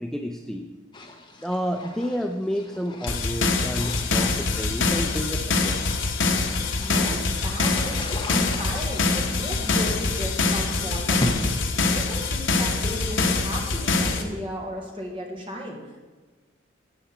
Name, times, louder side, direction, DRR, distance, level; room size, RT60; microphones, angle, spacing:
voice 1, 0.0-0.7 1.4-5.9, equal, 5° left, 3 dB, 0.4 m, -30 dB
sound 1, 0.9-11.4, left 1 dB, 20° left, 1.1 m, -38 dB
sound 2, 3.1-14.2, left 3 dB, 70° left, 1.2 m, -24 dB
voice 2, 6.8-16.0, equal, 25° right, -1 dB, 2.1 m, -35 dB
14.0 x 8.9 x 4.3 m, 1.3 s
head